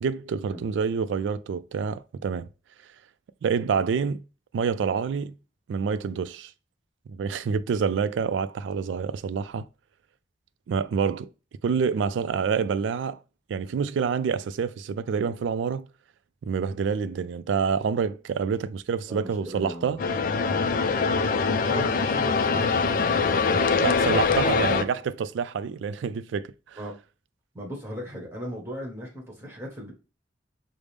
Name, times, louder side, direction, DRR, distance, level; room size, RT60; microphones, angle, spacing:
voice 1, 0.0-2.5 3.4-4.2 4.5-5.3 5.7-6.5 7.1-9.7 10.7-11.3 11.6-13.2 13.5-15.9 16.4-20.0 23.8-26.8, right 6 dB, 80° right, 0.3 m, -27 dB
voice 2, 19.1-19.9 21.3-24.9 26.8-26.9 27.5-29.9, equal, 15° right, 1.3 m, -38 dB
sound 1, 20.0-24.8, left 4 dB, 45° left, 0.3 m, -23 dB
5.0 x 2.0 x 3.2 m
head